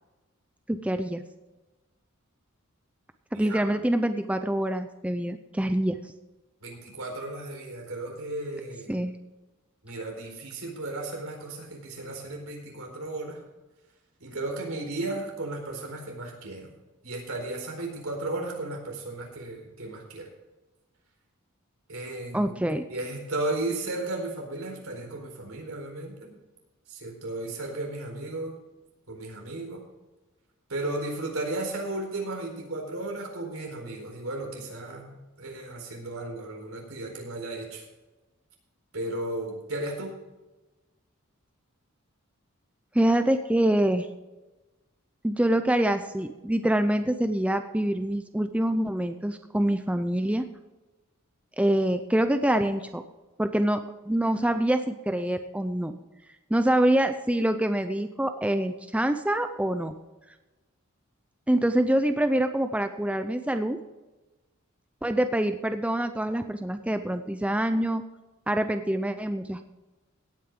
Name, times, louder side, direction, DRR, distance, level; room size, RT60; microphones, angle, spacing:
voice 1, 0.7-1.2 3.3-6.0 8.9-9.1 22.3-22.8 42.9-44.1 45.2-50.5 51.6-53.0 53.4-55.9 56.5-59.9 61.5-63.8 65.0-68.0 68.5-69.6, right 1 dB, 5° right, 8 dB, 0.5 m, -25 dB
voice 2, 3.3-3.8 6.6-8.9 9.8-13.4 14.2-16.7 17.0-20.3 21.9-22.5 22.9-26.3 26.9-28.5 29.1-29.8 30.7-37.8 38.9-40.1, right 2 dB, 75° right, 1 dB, 4.3 m, -34 dB
17.5 x 9.2 x 3.8 m, 1.1 s
head